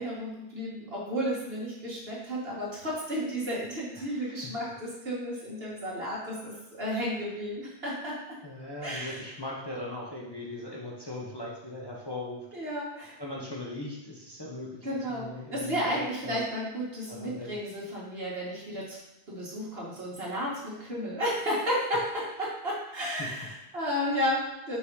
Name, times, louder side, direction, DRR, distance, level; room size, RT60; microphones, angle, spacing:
voice 1, 0.0-8.1 8.8-9.2 12.5-13.1 14.8-19.0 19.3-24.8, equal, 60° right, -5 dB, 2.1 m, -33 dB
voice 2, 4.0-4.6 8.4-12.5 13.2-16.4 17.1-17.5 23.2-23.3, left 2 dB, 20° left, -4 dB, 1.0 m, -39 dB
5.8 x 4.0 x 4.7 m, 0.94 s
omnidirectional pair, 1.2 m